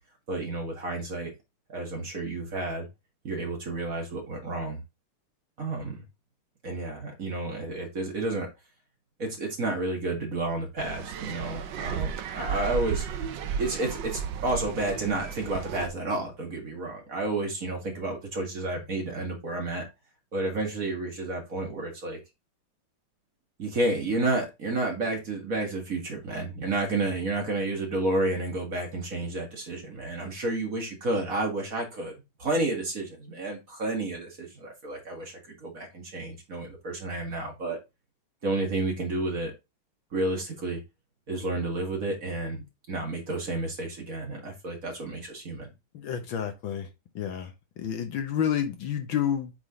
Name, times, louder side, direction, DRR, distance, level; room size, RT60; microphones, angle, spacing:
voice 1, 0.3-1.3 1.7-2.9 3.2-4.8 5.6-6.0 6.6-8.5 9.2-13.1 13.6-19.8 20.3-22.2 23.6-37.8 38.4-39.5 40.1-40.8 41.3-45.7, right 2 dB, 40° right, 2.0 m, -31 dB
sound 1, 10.8-15.9, right 7 dB, 65° right, 1.3 m, -34 dB
voice 2, 45.9-46.9 47.2-49.5, left 9 dB, 70° left, 1.7 m, -30 dB
8.2 x 3.8 x 3.7 m
omnidirectional pair, 2.4 m